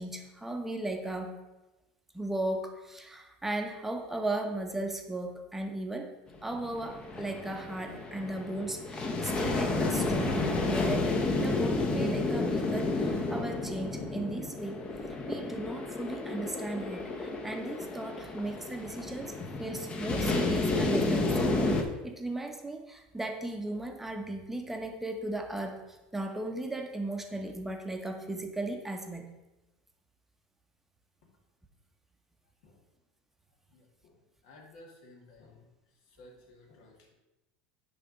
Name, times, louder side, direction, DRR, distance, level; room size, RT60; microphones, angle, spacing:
voice 1, 0.0-1.3 2.1-6.1 6.4-10.4 10.6-14.8 15.2-29.3, right 2 dB, 5° right, 4 dB, 0.9 m, -36 dB
sound 1, 6.3-21.8, left 2 dB, 20° left, 0.8 m, -31 dB
voice 2, 33.7-34.1 34.4-35.7 36.1-37.1, left 2 dB, 70° left, 0 dB, 2.2 m, -55 dB
9.7 x 3.5 x 5.2 m, 1.0 s
supercardioid pair, 145°, 4 cm